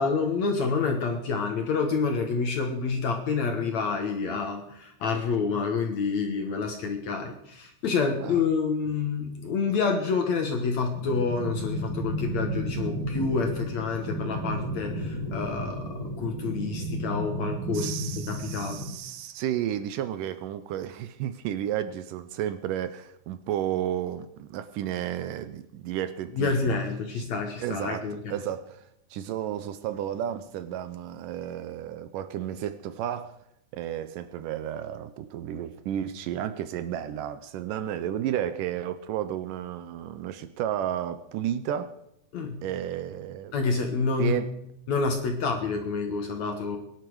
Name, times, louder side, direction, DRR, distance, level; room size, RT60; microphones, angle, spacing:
voice 1, 0.0-18.0 18.3-18.9 26.3-28.3 42.3-42.6 43.5-44.4 44.9-46.8, left 4 dB, 60° left, 4 dB, 2.0 m, -28 dB
sound 1, 10.9-18.9, right 1 dB, 50° right, 4.0 m, -33 dB
voice 2, 17.7-26.8 27.2-27.3 27.6-28.8 29.1-33.3 33.7-42.0 42.6-43.5 44.2-44.5, right 11 dB, 80° right, 11 dB, 1.9 m, -32 dB
22.5 x 11.0 x 4.8 m, 0.78 s
omnidirectional pair, 4.7 m